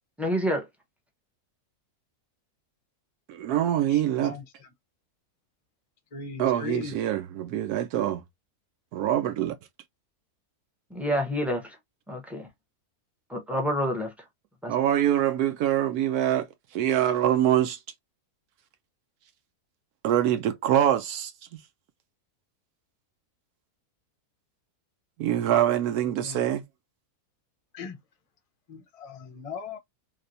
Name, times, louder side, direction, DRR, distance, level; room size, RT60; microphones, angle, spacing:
voice 1, 0.2-0.6 10.9-11.8 12.1-12.5 13.3-14.1 14.6-14.7, equal, ahead, 0.6 m, -28 dB
voice 2, 3.3-4.3 6.4-8.2 8.9-9.6 14.7-16.5 16.7-17.8 20.0-21.3 25.2-26.6, right 11 dB, 80° right, 1.1 m, -24 dB
voice 3, 3.9-4.7 6.1-7.0 26.2-26.4 27.7-28.0 28.7-29.8, left 6 dB, 40° left, 0.5 m, -39 dB
3.3 x 2.9 x 2.5 m
omnidirectional pair, 1.6 m